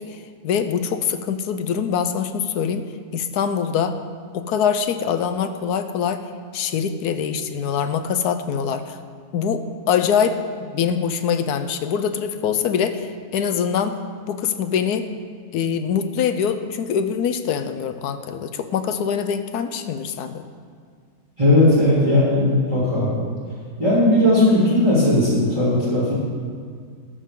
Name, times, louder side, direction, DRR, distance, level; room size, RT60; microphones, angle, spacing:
voice 1, 0.0-2.8 3.1-4.0 4.3-6.2 6.5-9.0 9.3-14.0 14.3-15.1 15.5-20.5, left 7 dB, 80° left, 9 dB, 1.2 m, -24 dB
voice 2, 21.4-23.1 23.8-26.1, left 1 dB, 20° right, -13 dB, 3.1 m, -17 dB
19.5 x 6.8 x 3.7 m, 2.1 s
omnidirectional pair, 1.7 m